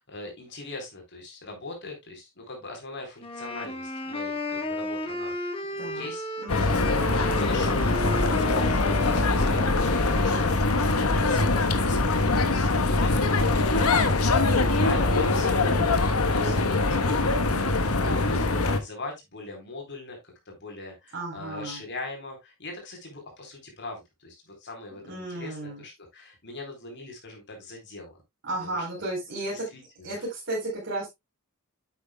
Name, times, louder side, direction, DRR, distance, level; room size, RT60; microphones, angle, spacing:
voice 1, 0.0-6.7 7.0-16.0 16.3-28.2 28.6-28.8 29.5-30.2, left 2 dB, 55° left, 2 dB, 3.9 m, -41 dB
sound 1, 3.2-10.7, left 1 dB, 25° left, 1.5 m, -34 dB
voice 2, 5.8-6.1 6.4-6.9 14.4-15.1 15.4-16.0 21.1-21.8 25.0-25.8 28.4-29.7 30.0-31.1, right 1 dB, 55° right, -4 dB, 4.0 m, -34 dB
sound 2, 6.5-18.8, left 3 dB, 80° left, 1.2 m, -23 dB
9.2 x 8.4 x 2.2 m, 0.19 s
head